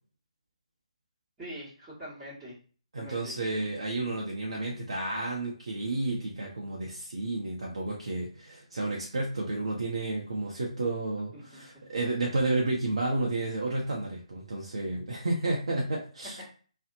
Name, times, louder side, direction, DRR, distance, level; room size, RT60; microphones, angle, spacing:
voice 1, 1.4-2.5 3.0-3.3 11.3-11.4, equal, 10° right, -15 dB, 1.2 m, -43 dB
voice 2, 2.9-16.4, right 2 dB, 60° right, -3 dB, 0.6 m, -31 dB
2.6 x 2.1 x 2.6 m, 0.40 s
figure-of-eight pair, 145°, 4 cm